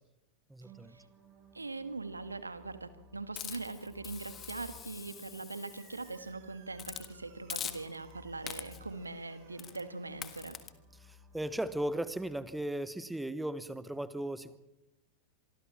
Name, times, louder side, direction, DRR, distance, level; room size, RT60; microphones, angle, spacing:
voice 1, 0.5-0.9 11.3-14.6, right 1 dB, 5° right, 15 dB, 1.2 m, -36 dB
sound 1, 0.6-12.6, left 2 dB, 30° right, 7.1 m, -59 dB
voice 2, 1.5-10.6, right 3 dB, 80° right, 11 dB, 1.7 m, -42 dB
Hiss, 3.4-6.2 6.8-7.1 7.5-8.1 8.5-8.9 9.6-9.8 10.2-10.7, left 9 dB, 25° left, 1.7 m, -44 dB
sound 2, 5.7-10.7, right 7 dB, 45° right, 6.1 m, -63 dB
25.0 x 25.0 x 4.3 m, 0.93 s
figure-of-eight pair, 90°, 0 cm